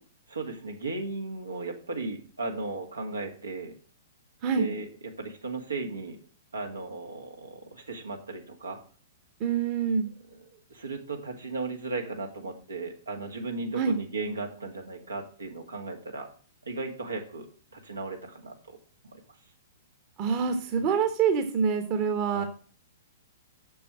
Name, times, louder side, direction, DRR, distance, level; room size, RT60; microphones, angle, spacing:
voice 1, 0.3-3.7 4.5-6.2 6.5-8.8 10.4-16.3 16.7-17.5 17.7-18.8 19.1-19.2 22.3-22.5, right 3 dB, 80° right, 3 dB, 2.1 m, -36 dB
voice 2, 9.4-10.1 13.7-14.0 20.2-22.4, right 6 dB, 35° right, 7 dB, 1.4 m, -26 dB
7.1 x 7.0 x 7.7 m, 0.42 s
figure-of-eight pair, 110°, 0 cm